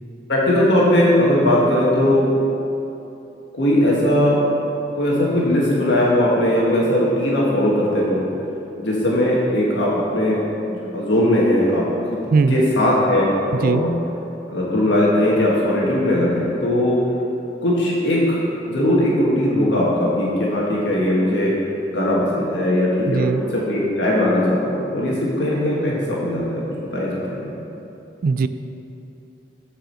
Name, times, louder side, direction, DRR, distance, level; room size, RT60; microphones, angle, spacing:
voice 1, 0.3-2.3 3.5-4.4 4.9-8.2 8.8-10.4 10.7-11.9 12.1-12.2 12.5-13.9 14.5-17.0 17.6-21.5 21.9-26.6 26.9-27.5, left 1 dB, 75° left, -5 dB, 1.4 m, -19 dB
voice 2, 12.3-12.6 13.6-13.8 23.1-23.4 28.2-28.5, right 4 dB, 50° right, 12 dB, 0.3 m, -18 dB
7.6 x 4.9 x 6.4 m, 2.9 s
head